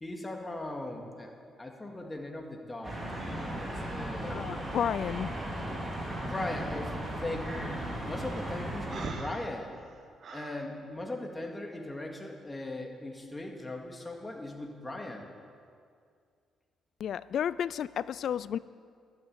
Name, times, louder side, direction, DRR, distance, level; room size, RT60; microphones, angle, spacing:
voice 1, 0.0-4.4 6.2-7.7 8.1-9.8 10.3-15.3, left 2 dB, 15° left, 1 dB, 2.1 m, -39 dB
sound 1, 2.8-9.1, right 1 dB, 25° right, 4.0 m, -36 dB
voice 2, 4.3-5.3 17.0-18.6, left 9 dB, 65° left, 18 dB, 0.3 m, -32 dB
Breathing, 8.9-10.6, right 4 dB, 55° right, 1.4 m, -41 dB
12.0 x 9.5 x 8.3 m, 2.2 s
cardioid pair, 90°, 0 cm